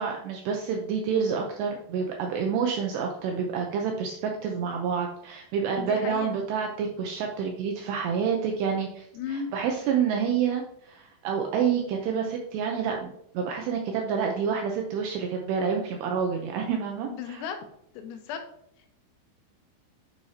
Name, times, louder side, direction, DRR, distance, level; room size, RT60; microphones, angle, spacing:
voice 1, 0.0-17.4, right 6 dB, 85° right, 2 dB, 2.4 m, -28 dB
voice 2, 5.8-6.4 9.1-9.5 17.1-17.6 18.0-18.4, left 7 dB, 90° left, 5 dB, 3.6 m, -35 dB
9.5 x 6.5 x 2.8 m, 0.73 s
omnidirectional pair, 5.9 m